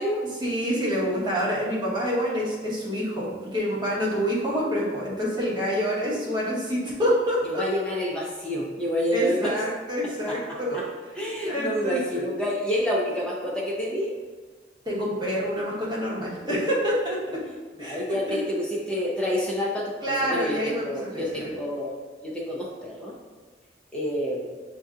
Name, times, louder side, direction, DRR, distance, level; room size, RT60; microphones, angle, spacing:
voice 1, 0.4-7.6 9.1-10.8 11.4-12.2 14.8-17.4 17.8-18.0 18.3-18.4 20.0-21.5, equal, 25° right, -7 dB, 1.1 m, -27 dB
voice 2, 7.4-9.6 10.3-10.9 11.1-14.1 17.7-21.9 22.2-23.1 23.9-24.6, equal, 5° left, -5 dB, 0.6 m, -28 dB
6.0 x 2.7 x 2.4 m, 1.4 s
head